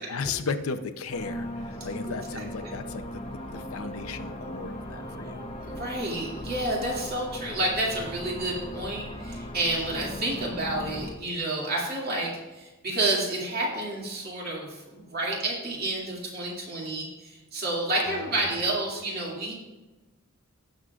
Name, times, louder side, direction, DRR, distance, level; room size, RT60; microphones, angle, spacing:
voice 1, 0.0-3.2 3.5-5.4 18.1-18.5, left 4 dB, 85° left, 9 dB, 0.7 m, -35 dB
sound 1, 1.1-11.1, equal, 25° left, 0.8 m, -38 dB
voice 2, 2.1-2.7 5.6-19.5, right 2 dB, 45° right, -3 dB, 2.3 m, -30 dB
17.0 x 6.5 x 2.4 m, 1.1 s
head